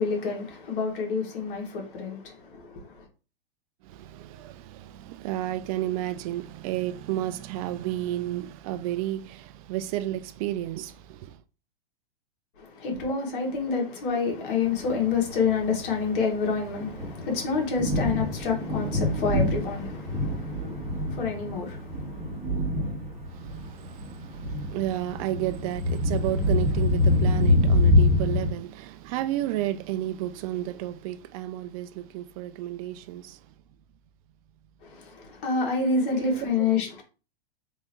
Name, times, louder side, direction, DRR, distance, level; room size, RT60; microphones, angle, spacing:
voice 1, 0.0-3.1 12.6-22.8 34.8-37.0, left 4 dB, 60° left, 1.6 m, -28 dB
voice 2, 3.8-11.4 23.3-33.4 36.1-36.7, right 13 dB, 40° right, 0.4 m, -32 dB
Thunder, 14.8-28.5, left 2 dB, 20° right, 1.6 m, -26 dB
3.6 x 3.2 x 3.0 m
hypercardioid pair, 115°, 30 cm